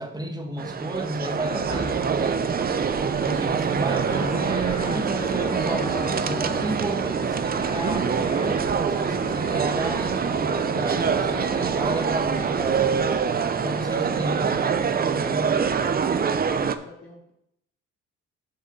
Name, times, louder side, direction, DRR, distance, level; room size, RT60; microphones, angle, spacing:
voice 1, 0.0-2.5 3.2-8.6 8.9-12.8 13.6-15.6, right 1 dB, 15° right, 3 dB, 1.4 m, -33 dB
sound 1, 0.6-16.8, right 6 dB, 30° right, 0.6 m, -25 dB
sound 2, 1.2-2.2 3.7-11.8, left 5 dB, 20° left, 0.4 m, -40 dB
sound 3, 1.4-13.2, right 4 dB, 50° right, 2.2 m, -34 dB
voice 2, 13.6-14.0 16.0-17.3, left 3 dB, 55° left, -6 dB, 2.3 m, -45 dB
6.8 x 6.3 x 5.1 m, 0.80 s
cardioid pair, 90°, 30 cm